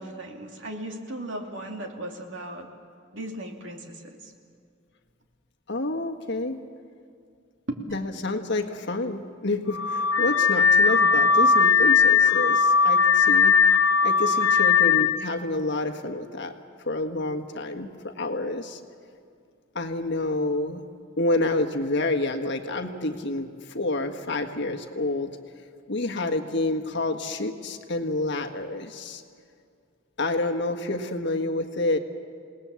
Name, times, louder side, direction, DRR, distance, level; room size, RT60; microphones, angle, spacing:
voice 1, 0.0-2.7 3.1-4.2 7.7-7.8, right 1 dB, 65° right, 2 dB, 2.7 m, -36 dB
voice 2, 5.7-6.6 7.9-13.5 14.0-16.5 16.8-18.8 19.7-20.8 21.2-25.3 25.9-29.2 30.2-32.0, left 2 dB, 60° left, 4 dB, 1.6 m, -28 dB
Car / Alarm, 9.7-15.2, left 6 dB, 85° left, 0.7 m, -19 dB
28.5 x 19.0 x 7.2 m, 2.3 s
head